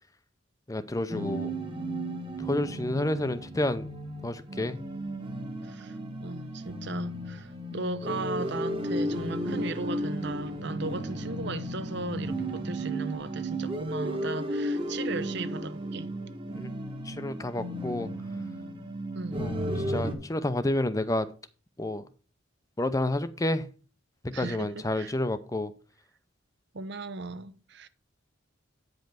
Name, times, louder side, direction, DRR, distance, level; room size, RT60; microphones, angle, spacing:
voice 1, 0.7-1.5 2.4-3.9 4.2-4.8 16.5-16.7 17.0-18.1 19.4-19.6 19.9-21.3 21.8-22.0 22.8-23.7 24.4-25.7, left 1 dB, 15° left, 0.6 m, -29 dB
sound 1, 1.1-20.1, right 1 dB, 25° right, 1.3 m, -34 dB
voice 2, 5.6-16.1 19.1-19.5 24.3-25.1 26.7-27.9, right 3 dB, 60° right, 0.8 m, -37 dB
9.1 x 5.3 x 5.8 m
head